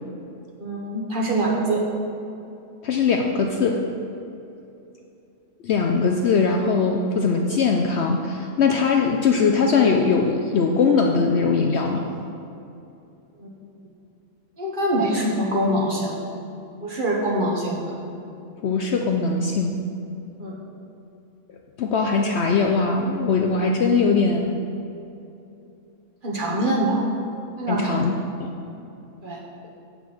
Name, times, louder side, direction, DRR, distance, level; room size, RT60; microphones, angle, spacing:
voice 1, 0.6-1.8 13.4-13.5 14.6-16.1 16.8-17.8 20.4-20.6 26.2-27.0 27.6-28.1 29.2-29.4, right 1 dB, 40° right, -3 dB, 1.3 m, -24 dB
voice 2, 2.8-3.8 5.6-12.0 18.6-19.8 21.8-24.5 27.7-28.1 28.4-28.5, left 4 dB, 65° left, 2 dB, 0.7 m, -21 dB
7.7 x 5.3 x 6.3 m, 2.7 s
omnidirectional pair, 1.5 m